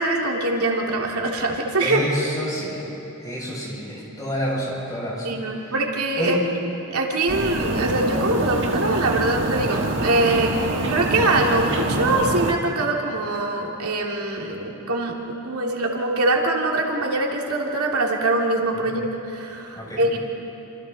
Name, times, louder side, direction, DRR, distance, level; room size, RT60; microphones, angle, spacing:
voice 1, 0.0-2.0 5.2-6.4 6.9-20.2, right 2 dB, 85° right, -1 dB, 2.7 m, -23 dB
voice 2, 1.8-2.8 3.2-5.4 6.2-6.3 18.8-18.9 19.8-20.0, equal, 15° left, -6 dB, 7.0 m, -28 dB
sound 1, 7.3-12.5, right 1 dB, 55° right, 1.7 m, -25 dB
28.0 x 27.0 x 4.1 m, 2.9 s
head